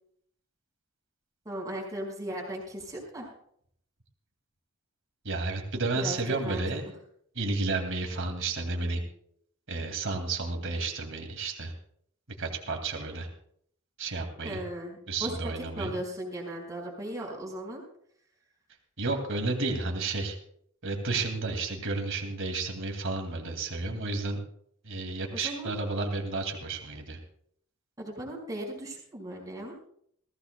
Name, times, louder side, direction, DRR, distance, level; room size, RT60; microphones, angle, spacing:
voice 1, 1.4-3.3 5.9-6.6 14.4-15.4 15.7-17.8 25.3-25.7 28.0-29.7, right 1 dB, 15° right, -1 dB, 5.1 m, -37 dB
voice 2, 5.2-6.9 7.4-9.0 9.7-11.7 12.4-13.3 14.0-14.6 15.1-15.9 19.0-20.4 20.8-24.4 24.8-27.2, right 3 dB, 60° right, 3 dB, 2.2 m, -31 dB
21.0 x 16.0 x 2.2 m, 0.65 s
head